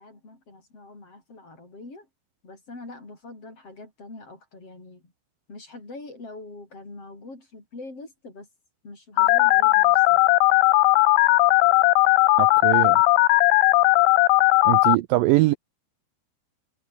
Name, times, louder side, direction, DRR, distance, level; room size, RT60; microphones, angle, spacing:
voice 1, 0.0-2.1 2.4-5.1 5.5-8.5 8.8-10.2, left 2 dB, 35° left, 8.5 m, -43 dB
Telephone, 9.2-15.0, left 20 dB, 90° left, 2.8 m, -17 dB
voice 2, 12.4-13.0 14.6-15.5, right 18 dB, 80° right, 2.1 m, -22 dB
omnidirectional pair, 4.7 m